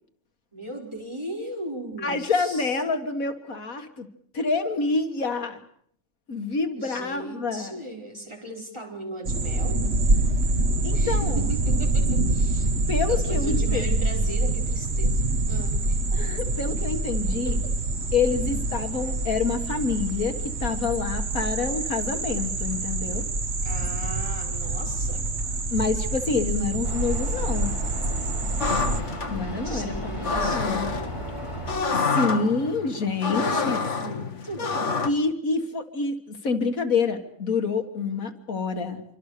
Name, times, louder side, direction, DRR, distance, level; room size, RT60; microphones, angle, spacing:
voice 1, 0.5-2.8 6.7-9.8 10.9-12.7 13.1-16.0 17.4-17.7 23.6-25.2 29.6-31.2 33.2-35.0, right 1 dB, 20° right, 0 dB, 5.2 m, -38 dB
voice 2, 2.0-4.1 4.3-5.6 6.3-7.8 10.8-11.4 12.9-14.3 16.1-17.6 18.1-23.2 25.7-27.8 29.3-30.9 32.1-33.8 35.0-39.0, left 4 dB, 75° left, 6 dB, 2.2 m, -27 dB
sound 1, 9.2-29.0, right 2 dB, 50° right, 1.5 m, -26 dB
Vehicle, 26.8-31.8, equal, 20° left, 5.3 m, -35 dB
sound 2, 28.6-35.1, left 4 dB, 55° left, 1.7 m, -28 dB
26.5 x 24.5 x 6.7 m, 0.67 s
omnidirectional pair, 1.5 m